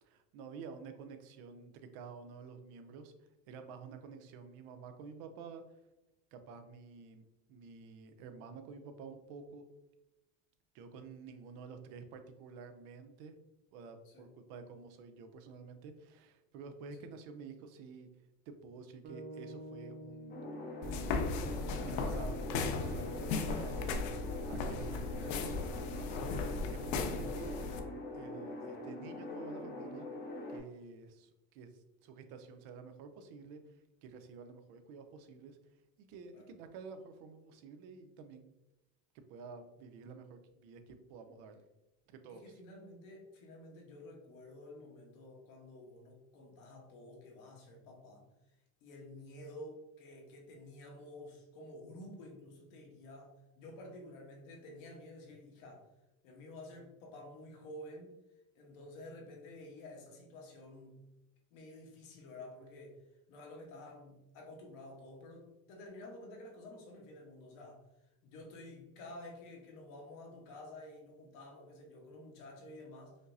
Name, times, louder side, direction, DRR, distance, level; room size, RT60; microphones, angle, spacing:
voice 1, 0.0-5.6 6.3-9.6 10.7-13.4 13.7-18.1 18.5-20.3 20.9-22.3 22.7-23.9 24.5-26.2 26.7-27.6 28.1-30.1 30.5-31.7 32.0-35.6 36.0-38.4 39.3-41.6 42.2-42.5, right 5 dB, 70° right, 7 dB, 0.6 m, -50 dB
sound 1, 19.0-23.3, right 1 dB, 25° right, 0.4 m, -51 dB
sound 2, 20.3-30.6, left 1 dB, 25° left, 0.8 m, -43 dB
sound 3, 20.8-27.8, left 4 dB, 60° left, 0.5 m, -37 dB
voice 2, 21.8-23.0 36.3-36.5 42.3-48.3 48.8-55.9 56.2-58.1 58.5-61.1 61.5-63.0 63.3-67.8 68.2-73.2, left 1 dB, 80° left, 0 dB, 1.1 m, -51 dB
5.1 x 2.0 x 2.6 m, 0.95 s
cardioid pair, 140°, 40 cm